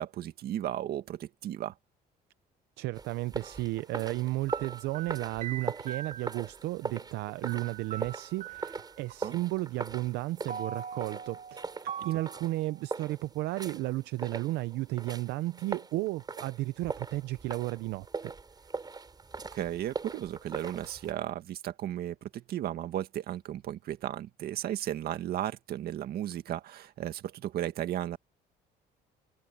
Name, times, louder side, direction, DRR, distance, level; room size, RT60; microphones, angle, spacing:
voice 1, 0.0-1.7 9.2-9.4 19.5-28.2, right 12 dB, 65° right, 1.9 m, -35 dB
voice 2, 2.8-18.3, right 18 dB, 85° right, 0.6 m, -33 dB
sound 1, 2.9-21.1, right 4 dB, 25° right, 7.4 m, -41 dB
sound 2, 3.4-3.6 4.5-6.5 7.5-9.0 10.5-13.0, right 8 dB, 50° right, 2.3 m, -42 dB
cardioid pair, 110°, 17 cm